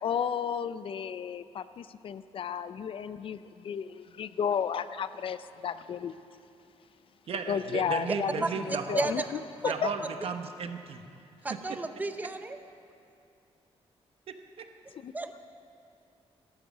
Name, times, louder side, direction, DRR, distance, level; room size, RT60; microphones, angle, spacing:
voice 1, 0.0-6.2 7.5-9.2 9.8-9.9 15.0-15.1, left 7 dB, 55° left, 13 dB, 0.4 m, -33 dB
voice 2, 7.3-9.1 9.7-11.0 11.7-11.8 14.3-14.6, right 6 dB, 60° right, 7 dB, 0.9 m, -35 dB
voice 3, 8.4-9.3 9.6-9.8 11.4-12.6 15.1-15.4, right 2 dB, 15° right, 9 dB, 0.7 m, -33 dB
13.0 x 12.5 x 6.1 m, 2.5 s
cardioid pair, 130°, 11 cm